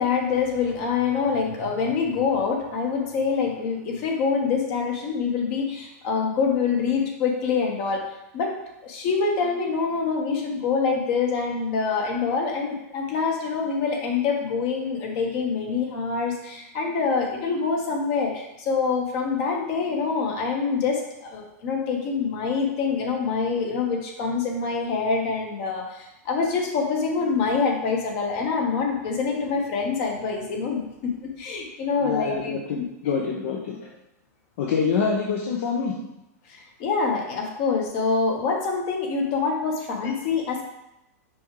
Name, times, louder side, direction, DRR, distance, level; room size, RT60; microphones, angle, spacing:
voice 1, 0.0-8.0 8.3-8.5 8.8-32.8 36.5-40.6, left 5 dB, 45° left, 1 dB, 1.4 m, -25 dB
voice 2, 32.0-33.9 34.6-35.9 40.0-40.1, left 5 dB, 65° left, -1 dB, 0.9 m, -26 dB
6.1 x 4.8 x 3.3 m, 0.88 s
hypercardioid pair, 135°, 9 cm